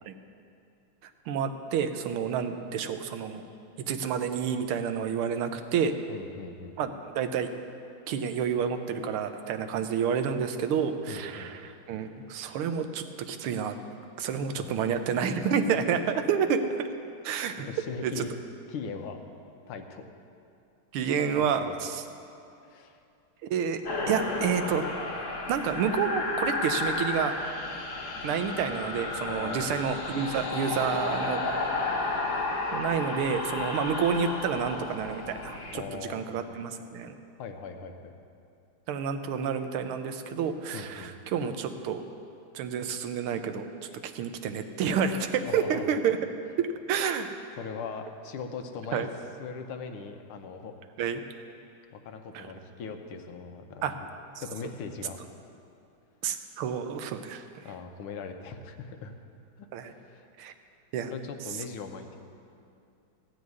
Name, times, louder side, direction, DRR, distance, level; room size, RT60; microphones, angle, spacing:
voice 1, 1.3-3.4 3.9-5.9 6.8-7.5 8.1-13.8 14.2-16.9 17.2-17.7 18.0-18.2 20.9-22.0 23.4-23.8 24.1-24.9 25.5-27.3 28.2-31.4 31.9-32.4 32.7-37.1 38.9-42.0 42.5-43.6 44.0-46.2 46.6-47.3 48.9-49.1 51.0-51.2 52.3-52.5 53.8-53.9 56.2-57.6 59.7-59.9 60.4-60.5 60.9-61.1, right 7 dB, 85° right, 8 dB, 1.6 m, -29 dB
voice 2, 6.1-6.8 11.1-11.5 14.2-14.8 15.2-16.0 17.5-18.3 18.7-19.2 19.7-20.0 21.4-21.8 22.6-23.0 29.3-29.8 35.7-36.3 37.4-38.1 40.7-41.1 45.5-45.9 47.6-49.1 49.4-50.7 51.9-53.9 54.4-55.2 57.6-59.2 59.6-60.3 61.0-62.2, left 5 dB, 85° left, 5 dB, 1.7 m, -40 dB
sound 1, 23.9-35.8, left 3 dB, 55° left, 1.6 m, -32 dB
15.0 x 5.0 x 9.3 m, 2.6 s
omnidirectional pair, 2.3 m